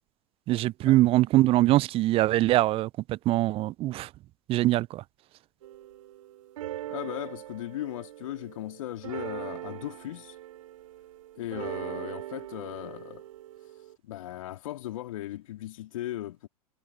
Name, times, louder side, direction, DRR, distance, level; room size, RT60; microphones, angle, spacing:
voice 1, 0.5-4.1 4.5-5.0, right 16 dB, 30° right, 0.6 m, -23 dB
sound 1, 5.6-13.9, right 13 dB, 60° right, 6.8 m, -41 dB
voice 2, 6.9-10.3 11.3-13.2 14.0-16.5, left 14 dB, 60° left, 3.2 m, -37 dB
figure-of-eight pair, 100°, 19 cm